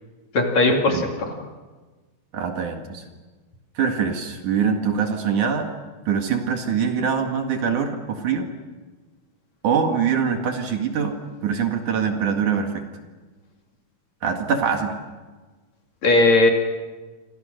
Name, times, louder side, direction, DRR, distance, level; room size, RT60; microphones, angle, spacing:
voice 1, 0.3-1.4 16.0-16.5, left 2 dB, 50° left, 2 dB, 3.7 m, -18 dB
voice 2, 2.3-3.0 3.8-5.7 6.1-8.5 9.6-12.8 14.2-14.9, right 6 dB, 60° right, 4 dB, 3.1 m, -23 dB
28.5 x 26.0 x 6.6 m, 1.3 s
omnidirectional pair, 4.3 m